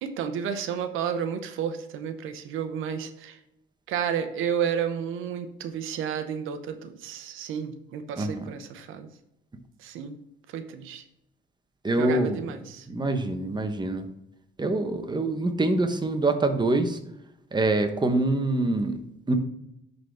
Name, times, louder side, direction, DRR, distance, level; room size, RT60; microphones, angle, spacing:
voice 1, 0.0-3.4 3.9-9.1 9.8-10.2 10.5-11.0 11.9-12.9, right 8 dB, 90° right, 9 dB, 0.8 m, -31 dB
voice 2, 8.2-8.5 11.8-12.4 12.9-14.1 14.6-17.0 17.5-19.0 19.3-19.4, right 2 dB, 20° right, 7 dB, 1.0 m, -25 dB
11.0 x 4.0 x 3.4 m, 0.84 s
cardioid pair, 90°, 20 cm